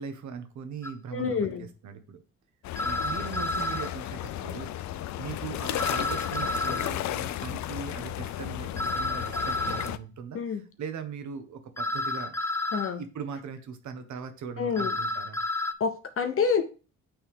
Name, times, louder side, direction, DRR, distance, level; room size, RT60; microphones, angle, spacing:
voice 1, 0.0-2.2 2.8-4.7 5.1-12.3 12.7-15.4, right 6 dB, 70° right, 8 dB, 1.2 m, -40 dB
sound 1, 0.8-0.9 2.8-3.9 5.8-6.9 8.8-9.9 11.8-12.9 14.8-15.7, left 2 dB, 10° left, 0.4 m, -30 dB
voice 2, 1.1-1.7 10.3-10.6 12.7-13.0 14.6-14.9 15.8-16.6, left 6 dB, 45° left, 8 dB, 0.9 m, -27 dB
sound 2, 2.6-10.0, left 13 dB, 65° left, 0.5 m, -34 dB
8.7 x 3.5 x 3.6 m, 0.34 s
cardioid pair, 90°, 30 cm